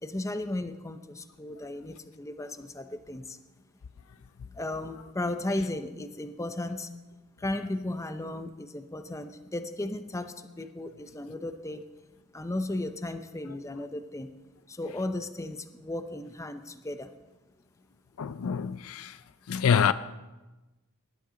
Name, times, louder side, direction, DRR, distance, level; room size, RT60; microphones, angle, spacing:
voice 1, 0.0-3.4 4.5-6.9 7.4-11.8 12.3-14.3 14.7-17.1, left 1 dB, 15° left, 0.6 m, -35 dB
voice 2, 18.2-19.1 19.5-19.9, left 7 dB, 70° left, 0.4 m, -25 dB
18.5 x 11.5 x 3.8 m
head